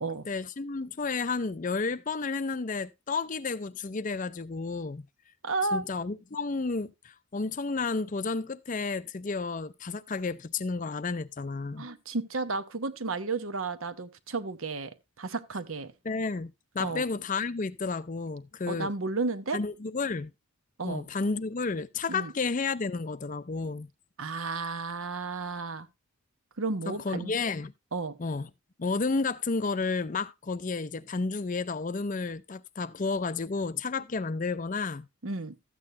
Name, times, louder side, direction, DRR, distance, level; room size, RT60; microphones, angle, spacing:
voice 1, 0.3-5.1 5.7-11.9 16.0-18.9 19.5-20.3 20.8-23.9 26.9-27.7 28.2-28.5 28.8-35.1, left 4 dB, 35° left, 0.5 m, -31 dB
voice 2, 5.4-5.8 11.8-15.9 16.8-17.0 18.7-19.6 20.8-21.1 22.1-22.3 24.2-25.9 26.6-27.3 27.9-28.2 35.2-35.5, right 3 dB, 65° right, 1.0 m, -32 dB
13.5 x 8.6 x 2.6 m
head